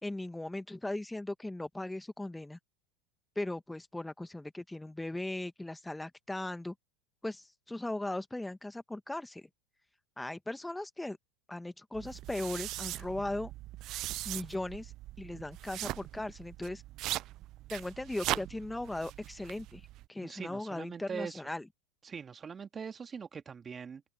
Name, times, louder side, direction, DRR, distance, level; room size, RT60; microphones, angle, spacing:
voice 1, 0.0-2.6 3.3-6.7 7.2-9.5 10.2-11.2 11.5-13.5 14.2-14.9 15.2-16.8 17.7-19.8 20.1-21.7, left 1 dB, 5° left, 1.6 m, -38 dB
sound 1, 11.9-20.1, right 16 dB, 45° right, 0.5 m, -40 dB
voice 2, 20.2-21.4 22.0-24.0, right 6 dB, 25° right, 2.1 m, -42 dB
open air
hypercardioid pair, 85°, 0 cm